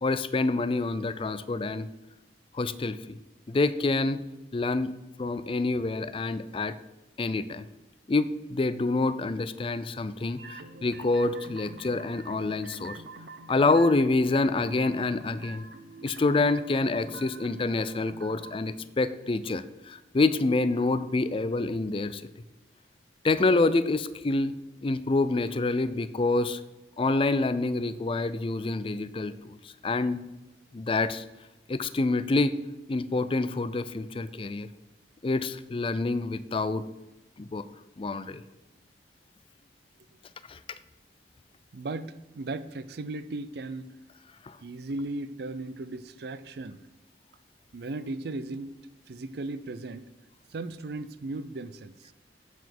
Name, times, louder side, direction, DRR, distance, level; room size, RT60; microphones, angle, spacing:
voice 1, 0.0-1.9 2.5-3.2 3.5-4.2 4.5-4.9 5.2-6.8 7.2-7.6 8.1-13.0 13.5-15.7 16.0-22.2 23.2-24.5 24.8-26.6 27.0-29.6 29.8-30.2 30.7-31.2 31.7-32.6 32.9-34.7 35.2-36.8 37.4-37.6 38.0-38.4 40.5-40.6 44.4-44.6, left 3 dB, 30° left, 14 dB, 0.4 m, -27 dB
sound 1, 10.4-18.6, right 3 dB, 85° right, 0.8 m, -46 dB
voice 2, 41.7-43.9 44.6-46.8 47.7-48.8 49.1-50.0 50.5-52.1, right 2 dB, 60° right, 14 dB, 0.5 m, -36 dB
7.9 x 7.1 x 6.0 m, 1.0 s
head